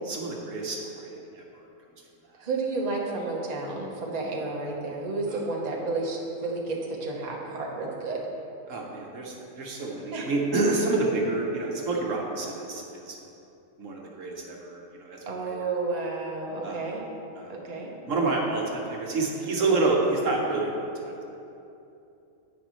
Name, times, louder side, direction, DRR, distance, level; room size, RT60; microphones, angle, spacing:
voice 1, 0.1-1.4 5.3-5.4 8.7-13.2 13.8-15.6 16.6-16.9 17.4-17.7 18.0-21.2, right 3 dB, 65° right, -1 dB, 1.3 m, -28 dB
voice 2, 2.4-8.2 10.1-10.3 15.2-17.1 17.5-17.9, right 3 dB, 30° right, -2 dB, 1.0 m, -31 dB
10.5 x 8.4 x 3.1 m, 2.8 s
omnidirectional pair, 1.5 m